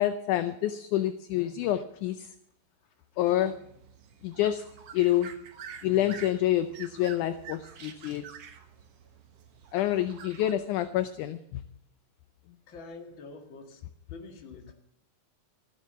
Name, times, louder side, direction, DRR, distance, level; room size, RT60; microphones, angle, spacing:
voice 1, 0.0-2.3 3.2-3.5 4.2-4.6 4.9-5.3 5.8-8.3 9.7-11.6, left 13 dB, 75° left, 11 dB, 1.9 m, -27 dB
sound 1, 3.3-10.5, right 7 dB, 55° right, 1.9 m, -48 dB
voice 2, 12.7-13.8 14.1-14.7, left 3 dB, 40° left, 3 dB, 2.1 m, -46 dB
15.5 x 9.6 x 6.9 m, 0.76 s
omnidirectional pair, 4.1 m